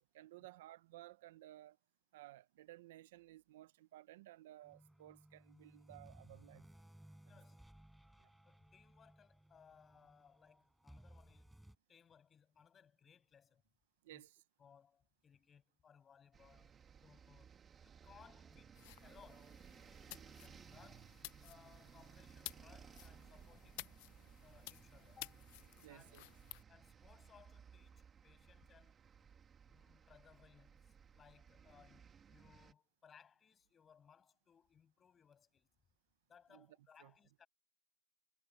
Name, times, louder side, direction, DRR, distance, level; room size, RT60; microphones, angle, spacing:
voice 1, 0.0-1.8 2.1-6.7 8.2-8.3 14.0-14.4 25.8-26.3 36.5-36.7 37.0-37.1, right 15 dB, 75° right, 0.9 m, -57 dB
sound 1, 4.6-11.7, right 1 dB, ahead, 6.9 m, -62 dB
voice 2, 7.2-7.6 8.4-11.6 11.9-13.6 14.1-14.2 14.6-17.5 17.8-19.6 20.2-23.9 24.4-25.4 25.9-26.2 26.7-28.9 29.2-29.3 29.7-35.7 36.3-37.5, left 7 dB, 20° left, 6.4 m, -66 dB
sound 2, 16.3-32.7, right 7 dB, 20° right, 2.9 m, -60 dB
sound 3, 18.7-26.6, left 21 dB, 60° left, 0.6 m, -55 dB
supercardioid pair, 155°, 0 cm